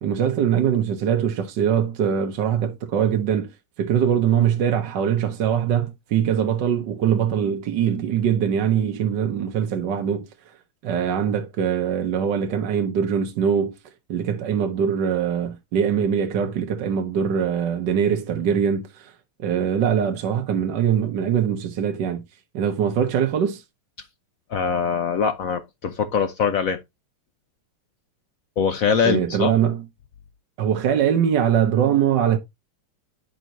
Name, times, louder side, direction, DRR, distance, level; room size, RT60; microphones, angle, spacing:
voice 1, 0.0-3.5 3.8-10.3 10.8-13.7 14.1-19.1 19.4-22.2 22.5-23.6 29.0-29.8 30.6-32.4, right 8 dB, 60° right, 1.5 m, -22 dB
voice 2, 24.5-26.8 28.6-29.5, left 6 dB, 70° left, 0.8 m, -22 dB
11.5 x 4.5 x 2.7 m
omnidirectional pair, 2.4 m